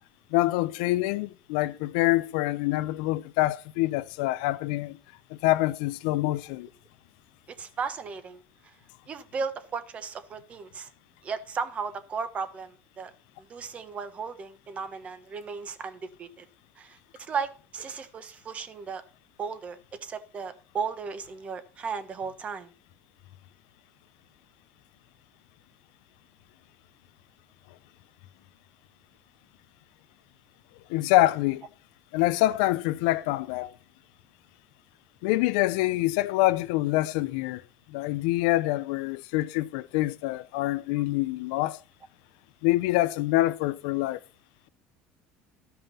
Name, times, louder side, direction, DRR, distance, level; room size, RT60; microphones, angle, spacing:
voice 1, 0.3-5.0 5.3-6.7 30.9-31.6 32.1-33.7 35.2-37.6 37.9-41.8 42.6-44.2, left 17 dB, 90° left, 0.6 m, -26 dB
voice 2, 7.6-8.7 9.1-10.9 11.2-13.1 13.4-16.4 16.8-19.0 19.4-22.7, right 5 dB, 35° right, 1.3 m, -35 dB
12.5 x 5.6 x 5.5 m
cardioid pair, 130°, 4 cm